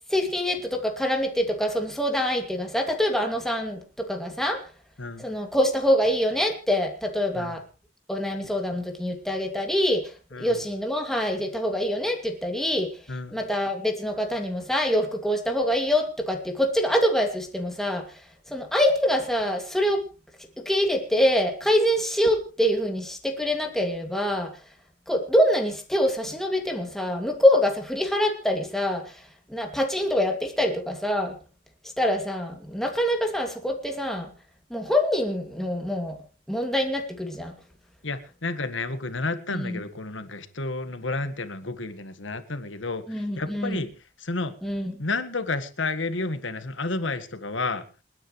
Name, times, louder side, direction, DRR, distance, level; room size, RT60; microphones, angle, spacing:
voice 1, 0.1-4.6 5.2-7.6 8.1-20.0 20.6-24.6 25.1-31.4 32.0-34.3 34.7-36.2 36.5-37.5 39.5-39.8 43.1-43.8 44.6-45.0, equal, ahead, 2 dB, 2.4 m, -25 dB
voice 2, 38.0-43.9 44.2-44.5 45.0-47.9, left 3 dB, 90° left, 11 dB, 1.7 m, -31 dB
29.0 x 9.7 x 3.2 m, 0.33 s
head